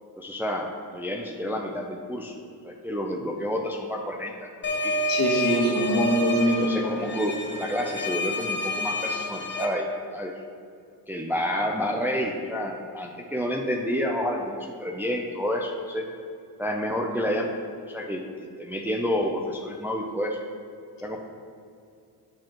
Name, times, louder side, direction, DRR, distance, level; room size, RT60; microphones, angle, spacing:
voice 1, 0.2-2.3 2.6-4.5 4.8-4.9 6.5-9.9 10.1-10.3 11.1-16.0 16.6-17.5 17.9-18.2 18.6-20.4 21.0-21.2, equal, 5° right, 1 dB, 0.5 m, -29 dB
sound 1, 4.6-9.7, equal, 25° left, 0.8 m, -29 dB
voice 2, 5.1-6.7 7.0-7.2, left 1 dB, 55° left, -2 dB, 1.5 m, -23 dB
7.3 x 4.7 x 3.0 m, 2.4 s
supercardioid pair, 70°, 41 cm